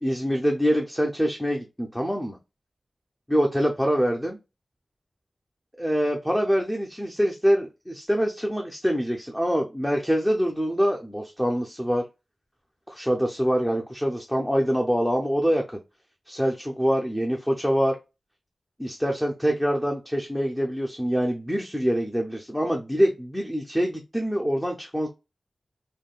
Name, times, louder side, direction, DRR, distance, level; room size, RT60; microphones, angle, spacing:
voice 1, 0.0-2.4 3.3-4.4 5.8-12.0 12.9-15.6 16.3-18.0 18.8-25.1, equal, 5° left, 0 dB, 0.5 m, -25 dB
3.5 x 2.2 x 2.3 m, 0.26 s
wide cardioid pair, 100°, 0 cm